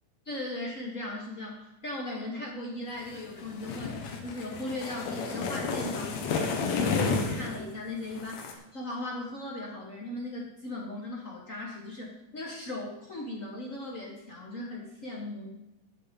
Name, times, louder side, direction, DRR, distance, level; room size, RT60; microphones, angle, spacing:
voice 1, 0.2-15.5, left 2 dB, 85° left, -2 dB, 0.7 m, -38 dB
sound 1, 3.1-7.6 8.1-8.5, left 4 dB, 60° left, 2.2 m, -31 dB
13.5 x 6.7 x 5.2 m, 0.97 s
omnidirectional pair, 3.9 m